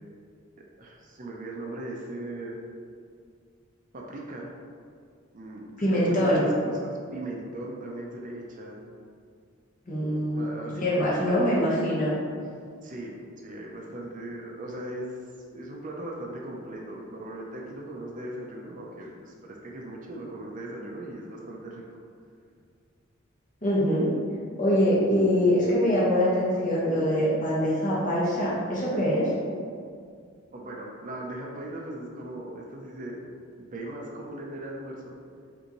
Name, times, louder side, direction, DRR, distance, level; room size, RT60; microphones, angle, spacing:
voice 1, 0.8-2.5 3.9-4.5 5.3-8.9 10.3-11.4 12.8-15.1 15.5-21.8 30.5-33.2 33.6-35.2, right 1 dB, 40° right, -1 dB, 0.5 m, -38 dB
voice 2, 5.8-6.4 9.9-10.4 10.7-12.1 23.6-24.1 24.6-29.3, equal, 40° left, -7 dB, 1.1 m, -24 dB
5.1 x 2.6 x 3.0 m, 2.2 s
head